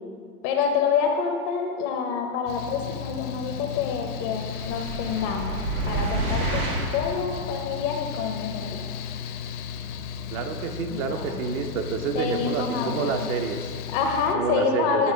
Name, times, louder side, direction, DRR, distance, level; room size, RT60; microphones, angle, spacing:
voice 1, 0.4-5.6 5.8-6.6 6.9-8.9 10.9-11.3 12.1-13.3 13.9-15.1, left 6 dB, 30° left, 3 dB, 0.4 m, -27 dB
Mechanical fan, 2.5-14.4, left 8 dB, 75° left, 0.6 m, -35 dB
sound 1, 4.5-7.1, right 2 dB, 85° right, 1.6 m, -29 dB
voice 2, 10.3-13.7 14.3-15.1, right 6 dB, 55° right, 6 dB, 0.7 m, -29 dB
8.9 x 3.1 x 4.5 m, 2.1 s
hypercardioid pair, 110°, 46 cm